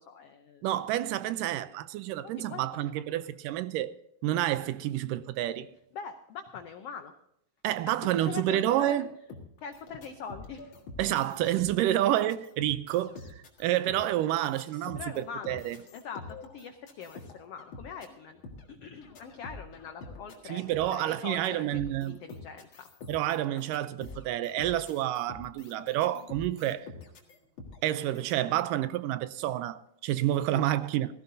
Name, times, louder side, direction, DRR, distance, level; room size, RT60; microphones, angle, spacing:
voice 1, 0.0-0.6 2.4-3.0 5.9-7.1 7.9-9.0 9.6-10.8 14.9-15.6 15.9-18.4 18.7-20.6 20.9-22.9 23.6-23.7 30.5-30.9, left 6 dB, 90° left, 1.3 m, -43 dB
voice 2, 0.6-3.9 4.2-5.7 7.6-9.1 11.0-13.2 13.6-15.8 20.5-22.2 23.1-26.9 27.8-31.1, right 13 dB, 85° right, 2.2 m, -29 dB
sound 1, 9.3-28.4, left 3 dB, 45° left, 2.2 m, -47 dB
16.5 x 15.5 x 2.7 m
omnidirectional pair, 3.9 m